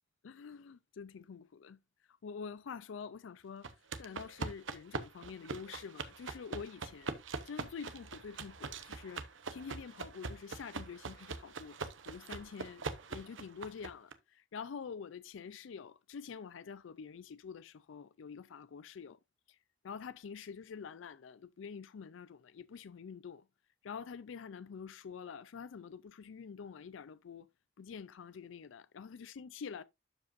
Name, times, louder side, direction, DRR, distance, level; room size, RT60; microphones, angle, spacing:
voice 1, 0.2-1.8 2.2-3.7 4.0-7.2 7.5-11.8 12.1-12.8 13.1-19.2 19.8-23.4 23.8-27.5 27.8-29.8, left 6 dB, 85° left, 0.4 m, -47 dB
sound 1, 3.6-14.1, right 4 dB, 85° right, 0.9 m, -43 dB
12.0 x 5.1 x 2.5 m
head